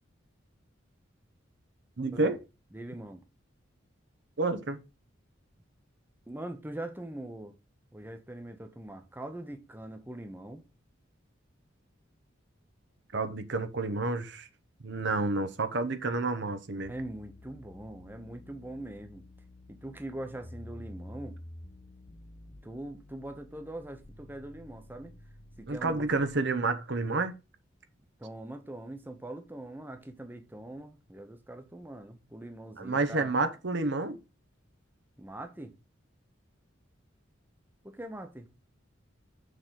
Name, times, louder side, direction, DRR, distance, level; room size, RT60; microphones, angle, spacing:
voice 1, 2.0-2.4 4.4-4.8 13.1-14.5 14.8-16.9 25.7-27.3 32.8-34.2, right 3 dB, 60° right, 0.9 m, -29 dB
voice 2, 2.7-3.2 6.3-7.5 7.9-10.6 16.9-19.2 19.7-21.4 22.6-25.1 25.6-26.1 28.2-33.3 35.2-35.7 37.8-38.5, right 1 dB, 10° right, 0.8 m, -42 dB
sound 1, 16.8-26.4, left 1 dB, 30° left, 0.8 m, -50 dB
6.5 x 3.9 x 6.3 m
head